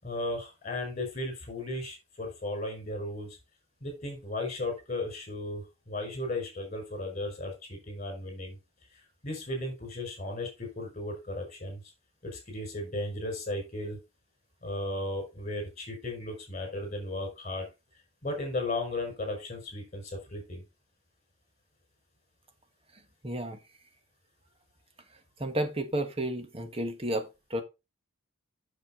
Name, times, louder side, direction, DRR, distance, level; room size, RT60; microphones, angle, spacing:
voice 1, 0.0-3.4 3.8-8.6 9.2-11.8 12.2-14.0 14.6-17.7 18.2-20.6, left 1 dB, 35° left, 5.0 m, -35 dB
voice 2, 23.2-23.6 25.4-27.6, right 1 dB, 25° right, 1.3 m, -32 dB
7.7 x 6.7 x 3.7 m
head